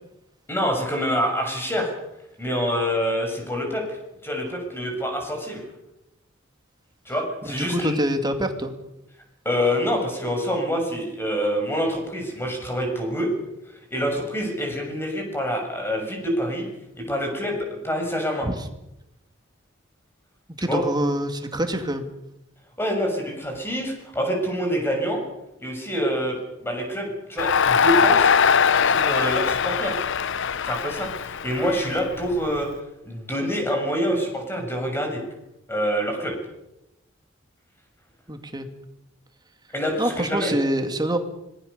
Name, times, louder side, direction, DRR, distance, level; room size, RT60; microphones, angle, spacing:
voice 1, 0.5-1.9 2.4-4.0 4.2-5.6 7.1-8.0 9.5-13.3 13.9-16.7 17.0-18.5 20.7-20.8 22.8-25.2 25.6-28.3 28.9-30.0 30.6-32.7 33.1-35.2 35.7-36.3 39.7-40.5, equal, 10° left, 2 dB, 7.1 m, -26 dB
voice 2, 7.4-8.7 18.4-18.7 20.6-22.1 38.3-38.7 40.0-41.2, right 1 dB, 20° right, 6 dB, 2.5 m, -25 dB
Crowd, 27.4-32.6, left 6 dB, 65° left, 0.7 m, -21 dB
25.5 x 20.0 x 6.9 m, 0.88 s
head